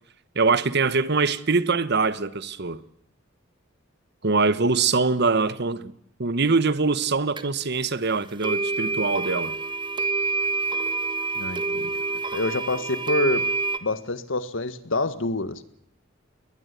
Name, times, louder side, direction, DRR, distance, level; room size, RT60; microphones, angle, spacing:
voice 1, 0.3-2.8 4.2-5.9 6.2-9.5, right 4 dB, 60° right, 1.2 m, -23 dB
sound 1, 7.4-7.5 8.4-13.8, right 3 dB, 25° right, 1.5 m, -27 dB
voice 2, 11.3-11.9 12.3-13.4 13.8-15.6, left 2 dB, 75° left, 1.7 m, -27 dB
21.5 x 20.5 x 8.3 m
head